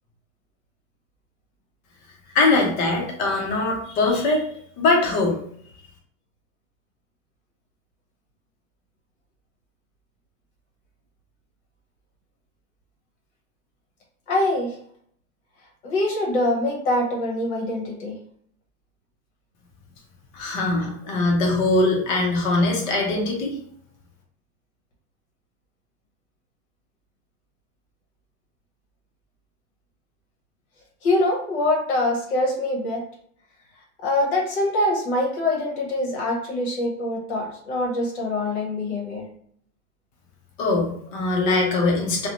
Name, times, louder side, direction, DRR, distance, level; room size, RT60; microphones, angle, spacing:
voice 1, 2.3-4.5 4.8-5.4 20.3-23.6 40.6-42.3, left 2 dB, 35° left, 0 dB, 0.6 m, -21 dB
voice 2, 14.3-14.8 15.8-18.2 20.8-20.9 31.0-33.0 34.0-39.3, left 1 dB, 50° left, -1 dB, 0.9 m, -24 dB
2.5 x 2.1 x 2.9 m, 0.64 s
supercardioid pair, 175°, 41 cm